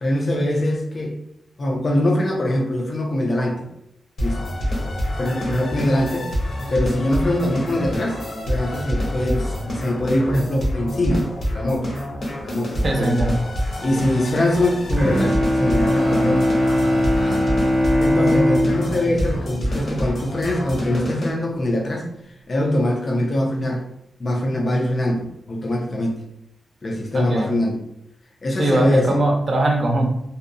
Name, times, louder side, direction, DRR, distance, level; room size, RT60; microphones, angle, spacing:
voice 1, 0.0-1.2 1.6-3.7 4.2-4.5 5.2-6.3 6.7-11.3 11.5-11.9 12.4-13.3 13.8-16.5 17.1-17.5 18.0-23.8 24.2-26.2 26.8-27.8 28.4-29.2, left 1 dB, 40° left, 0 dB, 0.4 m, -23 dB
sound 1, 4.2-21.3, equal, 65° left, 0.9 m, -27 dB
voice 2, 12.8-13.4 13.9-14.1 27.1-27.5 28.6-30.0, right 2 dB, 45° right, 1 dB, 0.5 m, -21 dB
Bowed string instrument, 14.9-20.5, left 1 dB, 15° right, 0.8 m, -21 dB
2.6 x 2.0 x 2.5 m, 0.78 s
wide cardioid pair, 135°, 0 cm